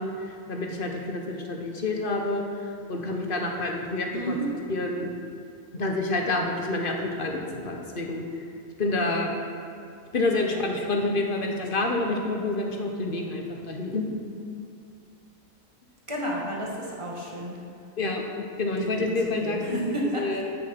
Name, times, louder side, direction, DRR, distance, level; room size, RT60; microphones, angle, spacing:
voice 1, 0.0-4.4 4.7-5.1 5.7-8.2 8.8-9.4 10.1-14.2 18.0-19.8 20.1-20.4, left 2 dB, 40° left, 2 dB, 1.4 m, -28 dB
voice 2, 4.1-4.5 10.5-10.6 16.1-17.6 18.8-20.4, right 1 dB, 20° right, -3 dB, 2.0 m, -31 dB
13.5 x 7.0 x 6.0 m, 2.5 s
omnidirectional pair, 1.4 m